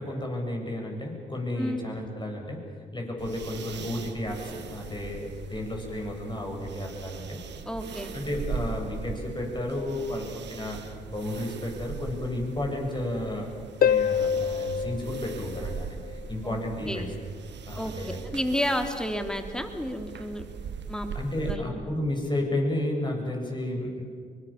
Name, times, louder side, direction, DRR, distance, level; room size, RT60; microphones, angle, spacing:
voice 1, 0.0-2.6 2.9-7.4 8.1-13.5 13.8-17.1 17.7-18.2 21.1-24.0, left 1 dB, 25° left, 1 dB, 7.9 m, -32 dB
voice 2, 1.6-1.9 7.6-8.1 16.4-16.6 16.9-17.1 17.7-17.9 18.3-20.5 20.9-21.1 21.4-21.8, equal, 5° left, 5 dB, 3.4 m, -31 dB
sound 1, 3.2-21.6, right 6 dB, 60° right, 1.8 m, -40 dB
Harp, 13.8-16.3 19.8-19.9, left 8 dB, 50° left, 0.5 m, -26 dB
24.5 x 21.5 x 7.5 m, 2.1 s
supercardioid pair, 50°, 20 cm